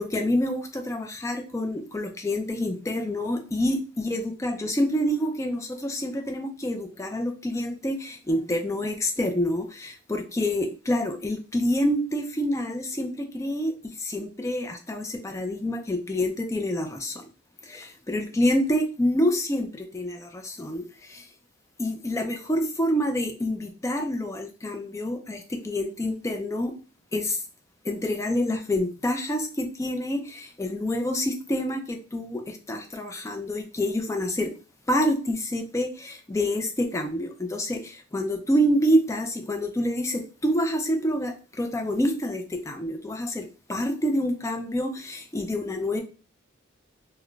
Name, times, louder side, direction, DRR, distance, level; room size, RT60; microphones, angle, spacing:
voice 1, 0.0-17.3 17.6-21.3 21.8-26.7 27.1-27.4 27.8-34.5 34.9-46.0, equal, 15° left, 4 dB, 0.4 m, -27 dB
2.3 x 2.2 x 3.7 m, 0.36 s
head